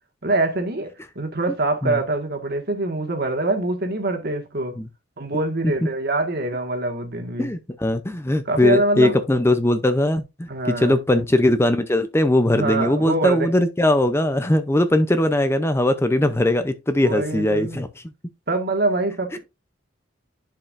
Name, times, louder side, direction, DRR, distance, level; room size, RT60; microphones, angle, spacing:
voice 1, 0.2-4.7 5.2-7.5 8.5-9.2 10.5-11.0 12.5-13.5 16.2-16.3 17.0-17.8 18.5-19.4, right 2 dB, 55° right, 1.8 m, -24 dB
voice 2, 7.4-17.9 19.3-19.4, left 1 dB, 15° left, 0.6 m, -20 dB
10.5 x 5.6 x 2.6 m
head